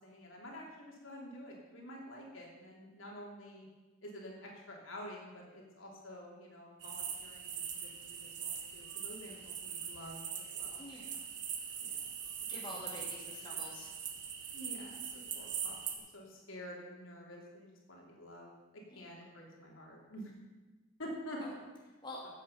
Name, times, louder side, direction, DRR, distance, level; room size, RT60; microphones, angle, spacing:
voice 1, 0.0-3.7 4.0-10.8 11.8-12.0 12.5-12.6 12.9-13.0 14.5-15.8 16.1-18.5 18.9-20.3 21.0-21.4, equal, 80° left, -2 dB, 3.2 m, -49 dB
sound 1, 6.8-16.0, right 7 dB, 60° right, 1.5 m, -42 dB
voice 2, 10.8-11.1 12.5-13.9 18.9-19.0 21.4-21.5 22.0-22.2, left 2 dB, 20° left, -3 dB, 2.2 m, -46 dB
14.5 x 8.2 x 5.6 m, 1.2 s
head